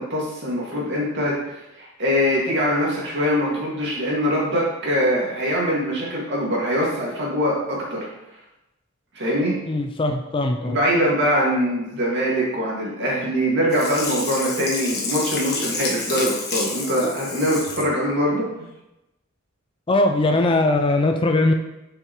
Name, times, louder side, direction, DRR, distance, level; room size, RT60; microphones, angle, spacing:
voice 1, 0.0-1.3 1.8-8.1 9.1-9.6 10.6-18.5, equal, 60° right, -4 dB, 2.1 m, -23 dB
voice 2, 9.7-10.8 19.9-21.5, left 2 dB, 25° left, 5 dB, 0.4 m, -20 dB
Sink (filling or washing), 13.7-17.9 18.3-18.4, left 3 dB, 50° left, 1.3 m, -29 dB
6.9 x 5.7 x 3.1 m, 0.94 s
head